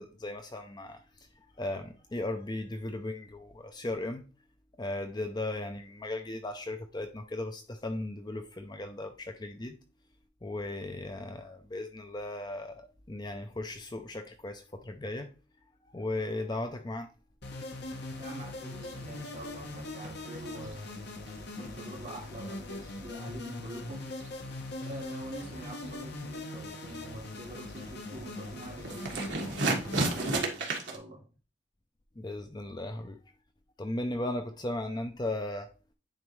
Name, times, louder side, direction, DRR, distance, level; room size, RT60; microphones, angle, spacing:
voice 1, 0.0-4.3 4.8-9.8 10.4-15.3 15.8-17.1 32.2-33.2 33.8-35.7, left 2 dB, 20° left, 0.5 m, -37 dB
sound 1, 17.4-30.4, left 2 dB, 55° left, 1.1 m, -41 dB
sound 2, 17.9-22.1 22.4-31.0, right 2 dB, 60° right, 1.6 m, -36 dB
voice 2, 18.2-21.0 21.5-24.1 24.8-31.2, right 1 dB, 40° right, 2.8 m, -46 dB
9.5 x 4.0 x 3.2 m
head